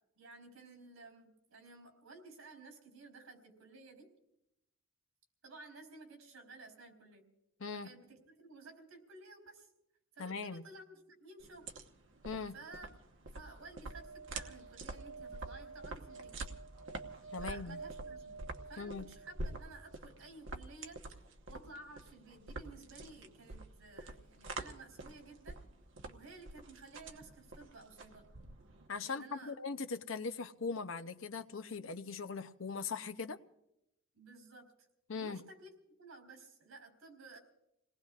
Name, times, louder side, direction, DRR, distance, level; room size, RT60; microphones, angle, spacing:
voice 1, 0.2-4.1 5.4-7.2 7.8-9.7 10.1-11.7 12.5-12.9 13.3-16.3 17.4-18.4 18.7-21.0 21.5-25.6 26.0-28.2 29.0-29.5 34.1-34.9 35.1-35.7 36.0-37.4, right 3 dB, 80° right, 4.0 m, -54 dB
voice 2, 7.6-7.9 10.2-10.6 12.2-12.6 17.3-17.8 18.8-19.1 28.9-33.4 35.1-35.4, left 4 dB, 70° left, 0.7 m, -40 dB
sound 1, 11.4-28.9, right 2 dB, 60° right, 1.1 m, -47 dB
sound 2, 13.8-20.0 22.3-22.4 22.5-22.6, right 4 dB, 85° left, 1.5 m, -51 dB
29.5 x 19.0 x 2.4 m
head